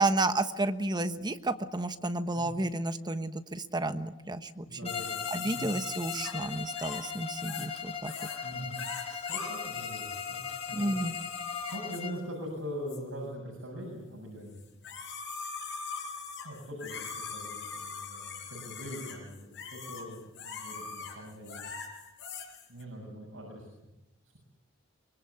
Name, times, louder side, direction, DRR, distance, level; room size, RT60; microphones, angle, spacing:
voice 1, 0.0-4.9 5.3-8.1 10.7-11.1, right 2 dB, 20° right, 9 dB, 1.2 m, -31 dB
voice 2, 4.7-5.7 8.4-8.8 9.3-11.0 11.7-14.6 16.4-21.7 22.7-23.7, equal, 80° right, -1 dB, 7.1 m, -42 dB
Bowed string instrument, 4.8-12.3, left 7 dB, 30° left, 2.1 m, -39 dB
sound 1, 4.9-7.8 8.0-8.4 8.7-12.0 12.9-13.0 14.6-22.8, left 5 dB, 60° left, 5.9 m, -41 dB
24.5 x 23.0 x 8.4 m, 0.94 s
head